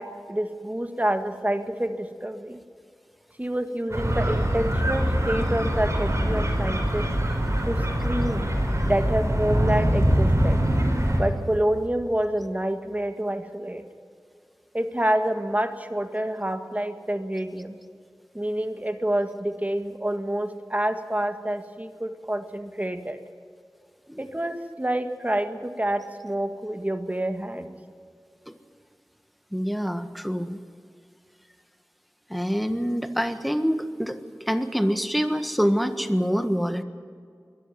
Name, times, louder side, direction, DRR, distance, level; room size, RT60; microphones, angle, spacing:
voice 1, 0.0-2.6 3.4-7.1 7.7-8.5 8.8-10.6 11.2-13.8 14.7-17.8 18.3-23.2 24.2-27.7, right 1 dB, 25° right, 7 dB, 1.8 m, -28 dB
sound 1, 3.9-11.2, equal, 45° right, 5.4 m, -23 dB
voice 2, 29.5-30.6 32.3-34.2 34.5-36.8, equal, ahead, 9 dB, 1.5 m, -25 dB
22.0 x 13.5 x 9.2 m, 2.3 s
wide cardioid pair, 45°, 6 cm